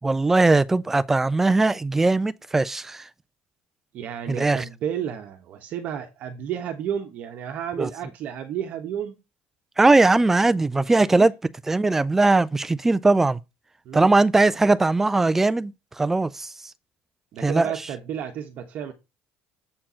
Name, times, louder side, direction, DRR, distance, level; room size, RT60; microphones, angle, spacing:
voice 1, 0.0-3.0 4.3-4.6 7.8-7.9 9.8-11.3 11.7-13.4 13.9-16.5 17.4-17.7, right 3 dB, 10° right, 0.3 m, -20 dB
voice 2, 3.9-9.2 11.1-11.3 13.8-14.1 17.3-18.9, right 9 dB, 45° right, 1.2 m, -32 dB
7.5 x 4.5 x 5.6 m
cardioid pair, 180°, 4 cm